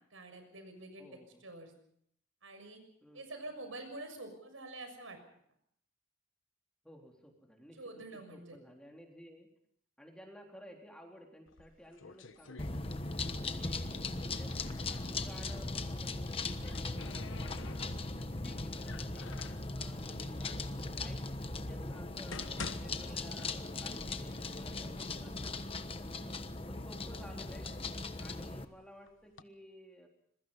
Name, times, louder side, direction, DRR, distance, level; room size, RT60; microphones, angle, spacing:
voice 1, 0.1-1.0 1.4-1.7 2.4-2.8 3.1-5.2 7.8-8.6 13.7-14.3, right 2 dB, 80° right, 7 dB, 6.5 m, -47 dB
voice 2, 1.0-1.5 3.0-3.3 6.8-8.0 8.3-9.5 10.0-14.0 14.3-14.5 14.9-22.4 22.8-30.1, equal, 5° left, 1 dB, 3.7 m, -55 dB
sound 1, 11.5-13.4 13.6-15.1 16.2-18.2 18.8-19.7 20.5-20.6 21.2-21.3 22.0-24.0 24.3-24.4 25.1-25.2 25.6-26.2 26.8-28.4 29.1-29.4, left 4 dB, 75° left, 1.3 m, -49 dB
sound 2, 12.6-28.6, left 2 dB, 30° left, 1.2 m, -39 dB
26.5 x 22.5 x 5.6 m, 0.69 s
head